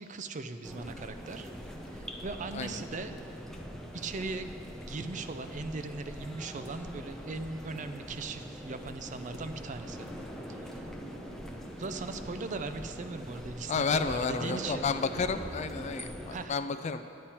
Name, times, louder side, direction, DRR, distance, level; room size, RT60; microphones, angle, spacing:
voice 1, 0.0-1.5 1.9-3.2 3.9-4.5 4.9-10.1 10.5-10.8 11.8-14.9 16.3-16.6, right 3 dB, 40° right, 9 dB, 0.4 m, -39 dB
sound 1, 0.6-16.5, equal, ahead, 0.7 m, -43 dB
voice 2, 13.7-17.0, left 5 dB, 35° left, 11 dB, 0.3 m, -31 dB
10.0 x 9.8 x 4.4 m, 2.7 s
head